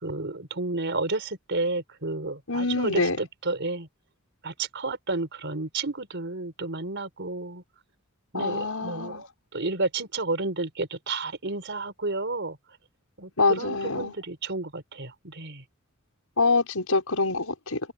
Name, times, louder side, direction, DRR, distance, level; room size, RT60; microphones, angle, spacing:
voice 1, 0.0-3.9 4.4-7.6 8.3-9.3 9.5-12.6 13.2-15.6, right 3 dB, 55° right, 4.6 m, -31 dB
voice 2, 2.5-3.2 8.3-9.2 13.4-14.1 16.4-17.8, left 3 dB, 85° left, 5.6 m, -25 dB
head